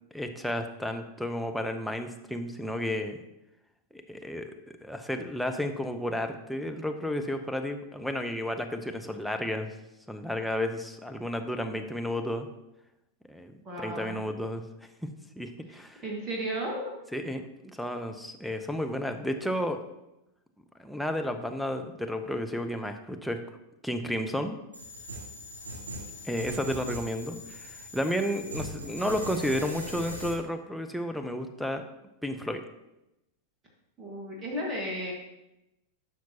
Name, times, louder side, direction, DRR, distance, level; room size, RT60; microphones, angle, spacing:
voice 1, 0.1-3.2 3.9-4.5 4.8-9.7 10.1-12.5 13.3-14.6 15.4-16.0 17.1-19.8 20.8-23.4 23.8-24.6 26.2-31.8 32.2-32.6, left 1 dB, ahead, 4 dB, 0.7 m, -32 dB
voice 2, 13.6-14.2 15.7-15.8 16.0-16.9 34.0-35.1, equal, 25° right, -2 dB, 1.7 m, -34 dB
sound 1, 24.7-30.3, equal, 75° right, 1.7 m, -40 dB
12.0 x 6.0 x 2.8 m, 0.91 s
figure-of-eight pair, 90°, 0 cm